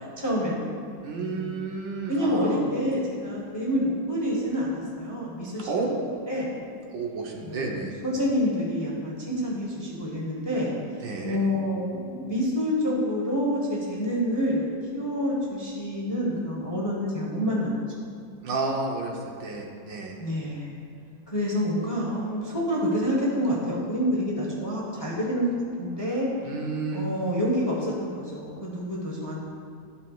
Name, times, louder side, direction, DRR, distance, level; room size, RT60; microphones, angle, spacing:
voice 1, 0.2-0.7 1.2-1.6 2.1-5.7 6.3-6.5 7.4-7.8 8.0-10.7 11.2-17.7 20.2-20.7 21.3-25.5 25.8-26.3 26.9-29.4, equal, 20° left, -4 dB, 0.7 m, -27 dB
voice 2, 1.0-2.6 5.6-6.1 6.9-7.9 11.0-11.4 18.4-20.2 26.4-27.1, right 3 dB, 75° right, 0 dB, 1.6 m, -31 dB
12.5 x 5.3 x 2.3 m, 2.3 s
omnidirectional pair, 2.0 m